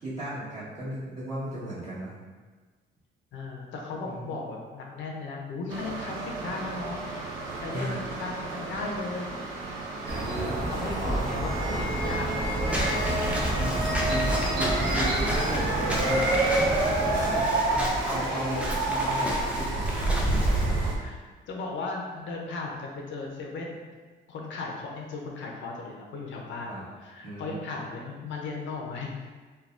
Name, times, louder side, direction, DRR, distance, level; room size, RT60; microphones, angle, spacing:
voice 1, 0.0-2.2 4.0-4.3 7.7-8.0 10.1-10.6 10.8-11.2 11.7-12.0 13.5-16.7 17.0-19.8 20.2-20.5 26.6-26.8 27.2-27.6, right 1 dB, 35° right, -10 dB, 1.4 m, -36 dB
voice 2, 3.3-7.3 7.6-9.3 10.6-13.0 18.3-18.6 21.0-23.8 24.3-29.3, left 3 dB, 70° left, 0 dB, 0.6 m, -36 dB
sound 1, 5.7-21.0, right 2 dB, 90° right, 0.5 m, -29 dB
sound 2, 10.1-17.4, right 1 dB, 55° right, 0.8 m, -30 dB
Walk footsteps / Squeak, 12.7-20.7, equal, 5° right, 0.6 m, -33 dB
3.2 x 2.2 x 2.5 m, 1.4 s
cardioid pair, 90°, 20 cm